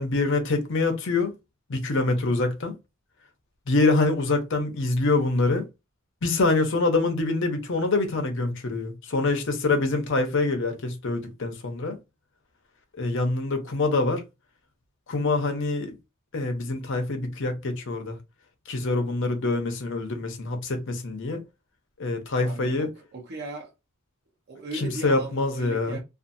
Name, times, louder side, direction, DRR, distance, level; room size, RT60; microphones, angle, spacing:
voice 1, 0.0-1.3 1.7-2.8 3.7-5.7 6.2-12.0 13.0-14.2 15.1-16.0 16.3-18.2 18.7-21.4 22.0-22.9 24.7-26.0, left 3 dB, 60° left, 0.7 m, -25 dB
voice 2, 22.4-23.7 24.5-26.0, right 2 dB, 50° right, 0.9 m, -37 dB
2.6 x 2.5 x 2.6 m
head